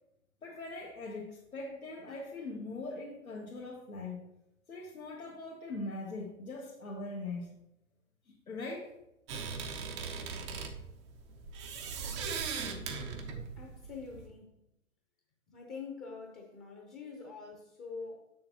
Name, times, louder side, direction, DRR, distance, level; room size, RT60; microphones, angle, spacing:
voice 1, 0.4-4.2 4.7-7.5 8.2-8.9, left 2 dB, 90° left, -4 dB, 1.4 m, -41 dB
sound 1, 9.3-14.3, right 5 dB, 20° right, 0.5 m, -39 dB
voice 2, 13.6-14.6 15.5-18.3, left 4 dB, 20° left, 1 dB, 0.8 m, -45 dB
7.3 x 6.5 x 2.9 m, 0.84 s
figure-of-eight pair, 125°, 41 cm